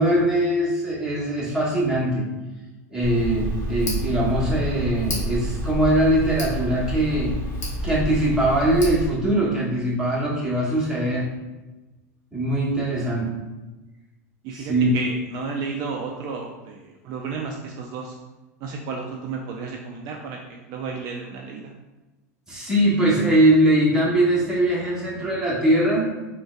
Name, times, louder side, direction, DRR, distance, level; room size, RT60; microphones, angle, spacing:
voice 1, 0.0-2.3 2.9-7.4 7.8-11.3 12.3-13.4 14.5-14.9 22.5-26.1, right 1 dB, 5° right, -6 dB, 1.1 m, -21 dB
Tick, 3.0-9.1, equal, 30° left, 1.2 m, -29 dB
voice 2, 14.4-18.2 18.6-21.7, right 4 dB, 50° right, 1 dB, 0.4 m, -33 dB
3.7 x 2.2 x 2.4 m, 1.1 s
hypercardioid pair, 100°, 9 cm